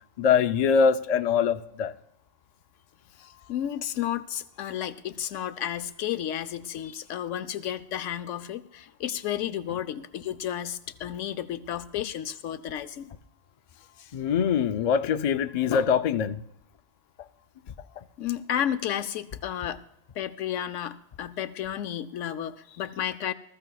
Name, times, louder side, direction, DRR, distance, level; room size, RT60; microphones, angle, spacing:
voice 1, 0.2-1.9 14.1-16.4, left 6 dB, 65° left, 0.4 m, -23 dB
voice 2, 3.2-13.1 14.0-14.1 18.2-19.8 20.1-23.3, left 10 dB, 85° left, 1.0 m, -32 dB
20.0 x 14.0 x 2.3 m
omnidirectional pair, 1.3 m